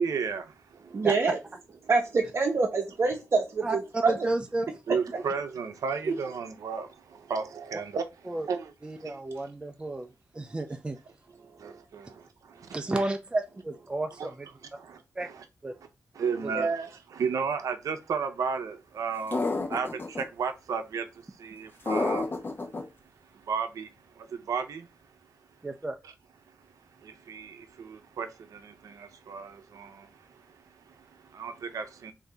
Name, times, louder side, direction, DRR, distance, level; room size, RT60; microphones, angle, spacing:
voice 1, 0.0-1.0 4.9-8.1 8.5-9.2 11.6-12.8 14.2-14.3 14.7-15.4 16.1-22.7 23.2-25.1 26.0-26.1 26.5-32.1, right 5 dB, 80° right, 0.6 m, -34 dB
voice 2, 0.9-1.4 1.9-4.3 5.1-5.2 6.1-6.2 16.5-16.9, right 4 dB, 50° right, 0.7 m, -26 dB
voice 3, 3.6-4.7 8.3-8.5 8.8-10.1 10.3-11.0 12.7-14.5 15.2-15.3 15.6-15.7 16.4-16.7 25.6-26.0, right 2 dB, 15° right, 0.4 m, -31 dB
sound 1, 19.3-20.2 21.9-22.8, left 3 dB, 40° left, 0.8 m, -29 dB
3.4 x 2.7 x 3.8 m
wide cardioid pair, 110°, 6 cm